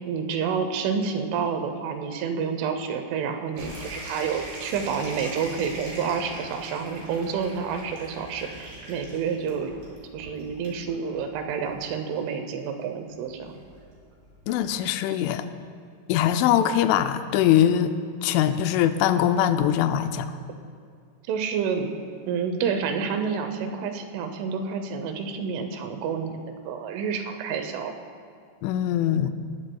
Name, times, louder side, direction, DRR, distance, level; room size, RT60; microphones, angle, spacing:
voice 1, 0.1-9.7 10.1-13.5 21.3-21.9 22.3-26.4 26.7-27.9, right 6 dB, 85° right, 6 dB, 3.4 m, -29 dB
sound 1, 3.6-14.8, right 1 dB, 60° right, 5.6 m, -42 dB
voice 2, 14.5-15.5 16.1-17.9 18.2-20.3 28.6-29.3, left 10 dB, 85° left, 9 dB, 3.0 m, -22 dB
18.5 x 15.5 x 2.3 m, 2.2 s
omnidirectional pair, 5.4 m